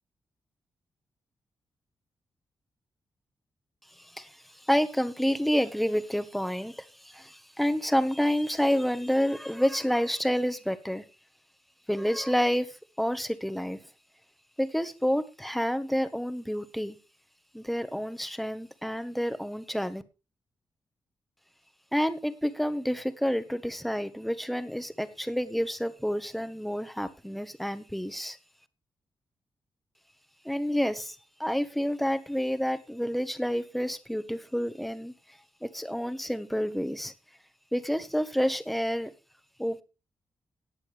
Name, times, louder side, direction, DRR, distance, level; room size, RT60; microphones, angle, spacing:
voice 1, 3.9-11.0 11.9-13.8 14.6-17.0 17.5-20.0 21.9-28.4 30.4-35.1 35.6-37.1 37.7-39.1 39.6-39.8, equal, ahead, 1.3 m, -29 dB
19.0 x 7.1 x 3.4 m
cardioid pair, 85°, 7 cm